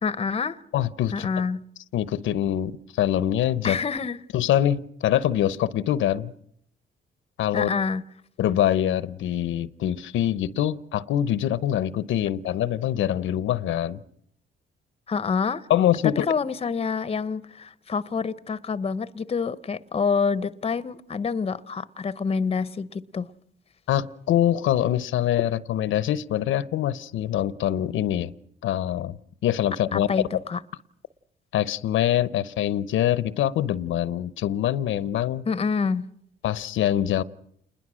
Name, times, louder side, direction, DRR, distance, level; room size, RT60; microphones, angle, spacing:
voice 1, 0.0-0.6 1.1-1.6 3.6-4.2 7.5-8.0 15.1-15.7 16.2-23.3 29.9-30.6 35.5-36.1, left 5 dB, 30° left, 0.8 m, -27 dB
voice 2, 0.7-1.3 1.9-3.8 4.3-6.3 7.4-7.7 8.4-14.0 15.7-16.3 23.9-28.3 28.6-30.1 31.5-35.4 36.4-37.2, left 11 dB, 80° left, 0.8 m, -24 dB
28.5 x 21.0 x 6.3 m
cardioid pair, 90°, 20 cm